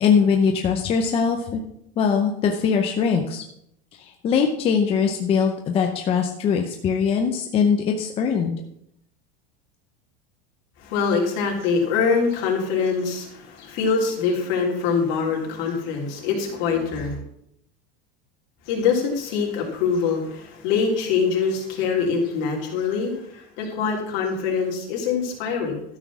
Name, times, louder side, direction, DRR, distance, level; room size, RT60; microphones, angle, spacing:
voice 1, 0.0-1.6 2.0-3.4 4.0-8.6, left 6 dB, 20° left, 3 dB, 0.6 m, -21 dB
voice 2, 10.8-17.2 18.7-25.8, left 5 dB, 50° left, -1 dB, 3.2 m, -24 dB
13.0 x 6.1 x 6.1 m, 0.75 s
supercardioid pair, 175°, 31 cm